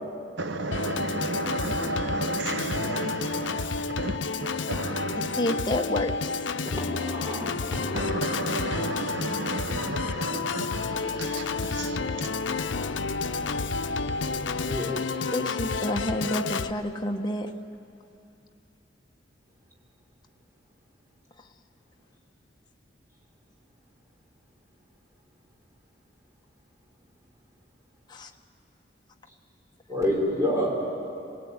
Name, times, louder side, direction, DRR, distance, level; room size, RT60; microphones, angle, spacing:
voice 1, 0.4-5.4 7.9-12.4, right 2 dB, 75° right, 1.0 m, -33 dB
Organ, 0.7-16.7, left 4 dB, 90° left, 0.7 m, -30 dB
voice 2, 4.9-6.3 15.3-17.5 28.1-28.3, left 1 dB, 25° left, 1.2 m, -29 dB
voice 3, 6.6-8.0 14.3-14.9 29.9-30.8, equal, 15° right, 5.0 m, -29 dB
27.0 x 17.5 x 9.7 m
head